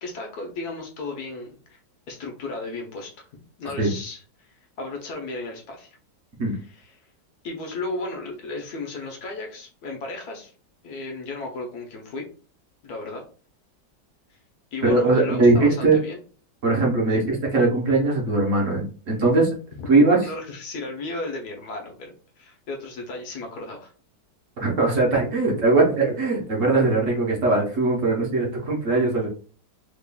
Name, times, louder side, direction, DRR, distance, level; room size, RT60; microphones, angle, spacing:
voice 1, 0.0-1.8 2.1-3.3 3.6-4.5 4.8-6.0 6.5-6.9 7.4-10.5 10.8-12.2 12.8-13.2 14.3-14.4 14.7-16.2 19.8-19.9 20.2-23.9, left 2 dB, 65° left, 2 dB, 1.2 m, -34 dB
voice 2, 14.8-16.0 16.6-19.5 19.9-20.2 24.6-29.3, right 3 dB, 55° right, -2 dB, 1.1 m, -20 dB
3.5 x 3.3 x 2.2 m, 0.40 s
omnidirectional pair, 1.9 m